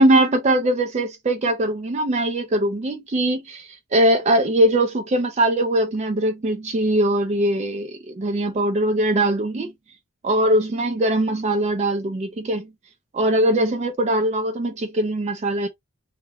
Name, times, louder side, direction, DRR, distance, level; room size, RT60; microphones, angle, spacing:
voice 1, 0.0-9.7 10.2-12.7 13.1-15.7, right 1 dB, 30° right, 0.3 m, -21 dB
2.2 x 2.1 x 3.4 m
head